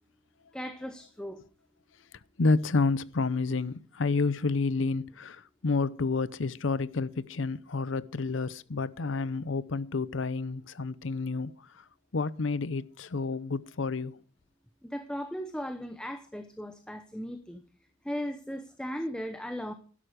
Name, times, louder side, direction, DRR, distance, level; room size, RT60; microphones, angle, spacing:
voice 1, 0.5-1.4 14.8-17.6 18.0-19.7, equal, 5° left, 0.8 m, -37 dB
voice 2, 2.4-11.8 12.1-14.2, left 3 dB, 80° left, 0.7 m, -30 dB
12.5 x 11.5 x 5.0 m
head